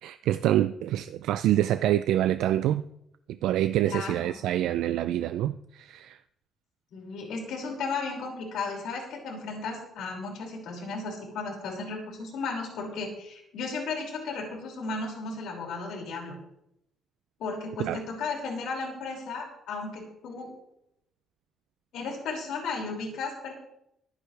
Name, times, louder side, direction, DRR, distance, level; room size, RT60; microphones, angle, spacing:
voice 1, 0.0-2.8 3.4-6.2 17.9-18.0, right 12 dB, 85° right, 12 dB, 0.4 m, -26 dB
voice 2, 3.8-4.4 6.9-16.3 17.4-20.5 21.9-23.5, left 4 dB, 65° left, -1 dB, 5.6 m, -35 dB
24.0 x 9.8 x 3.4 m, 0.80 s
cardioid pair, 180°, 0 cm